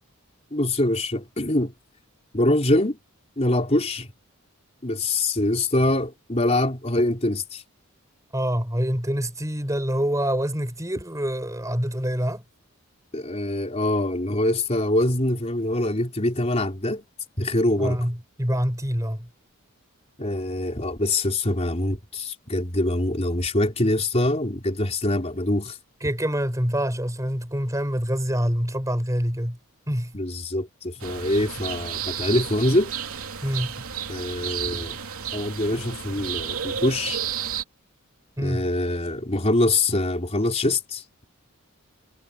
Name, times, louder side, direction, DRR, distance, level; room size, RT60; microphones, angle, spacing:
voice 1, 0.5-1.7 2.3-3.0 3.4-4.1 4.8-7.6 13.1-17.0 17.4-18.0 20.2-25.8 30.1-32.9 34.1-35.0 35.3-37.2 38.4-41.0, left 1 dB, 30° left, 4.1 m, -24 dB
voice 2, 8.3-12.4 17.8-19.3 26.0-29.6 29.9-30.1 33.4-33.7 38.4-38.7, equal, 15° right, 5.7 m, -26 dB
sound 1, 31.0-37.6, right 8 dB, 85° right, 2.9 m, -32 dB
head